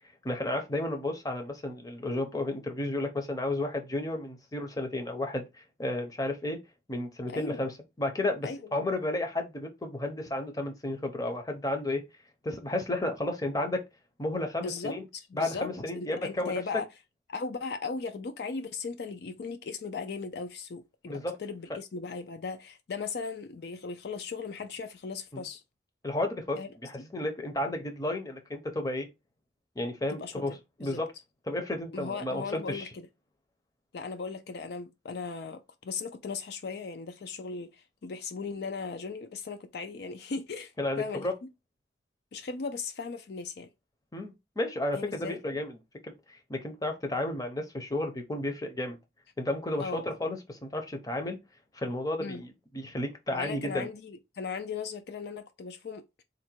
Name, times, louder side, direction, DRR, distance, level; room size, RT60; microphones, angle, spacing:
voice 1, 0.2-6.6 6.9-7.7 8.0-12.0 12.4-13.8 14.2-15.0 15.4-16.6 21.1-21.4 25.3-25.4 26.0-29.1 29.8-30.5 30.8-31.1 31.5-32.9 40.8-41.3 44.1-45.8 46.3-49.0 49.4-51.4 51.7-53.9, left 1 dB, 20° left, 0.6 m, -32 dB
voice 2, 7.3-7.7 8.4-8.6 14.6-15.7 15.9-16.9 17.3-21.1 21.4-25.6 26.6-26.7 30.1-31.0 31.9-32.9 33.9-41.3 42.3-43.7 44.9-45.4 49.8-50.1 52.2-52.4 53.3-56.2, left 4 dB, 60° left, 0.4 m, -37 dB
3.8 x 2.1 x 4.4 m
head